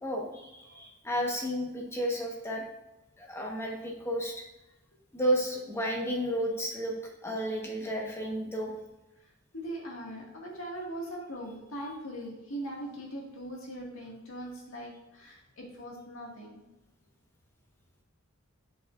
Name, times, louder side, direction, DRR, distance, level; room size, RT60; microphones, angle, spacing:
voice 1, 0.0-2.6 3.2-4.4 5.1-6.9 7.2-8.7, equal, 15° left, -1 dB, 1.2 m, -32 dB
voice 2, 9.2-16.7, right 1 dB, 75° left, -2 dB, 2.0 m, -41 dB
7.6 x 6.8 x 2.5 m, 0.99 s
head